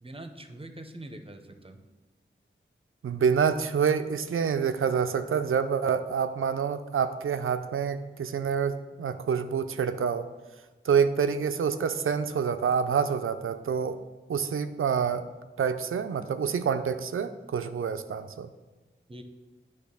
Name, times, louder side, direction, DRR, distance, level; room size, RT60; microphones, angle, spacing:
voice 1, 0.0-1.8 19.1-19.2, right 1 dB, 25° right, 7 dB, 0.7 m, -43 dB
voice 2, 3.0-10.3 10.9-14.0 14.3-15.2 15.6-18.5, right 6 dB, 85° right, 10 dB, 0.4 m, -27 dB
8.4 x 3.0 x 6.1 m, 1.2 s
cardioid pair, 45°, 21 cm